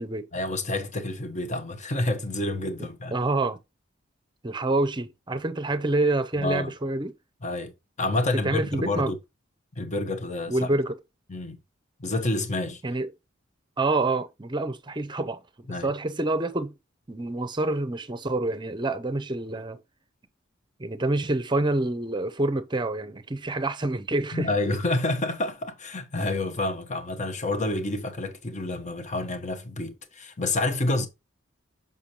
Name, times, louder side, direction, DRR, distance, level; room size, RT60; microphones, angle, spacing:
voice 1, 0.3-3.1 6.4-6.7 7.4-9.2 9.8-10.7 11.3-11.6 12.0-12.8 15.7-15.9 24.3-31.1, left 2 dB, 40° left, 1.1 m, -28 dB
voice 2, 3.1-3.6 4.4-7.1 8.4-9.1 10.5-10.9 12.8-13.1 13.8-16.8 17.1-19.8 20.8-24.5, right 2 dB, 25° right, 0.7 m, -27 dB
6.9 x 5.4 x 2.9 m
head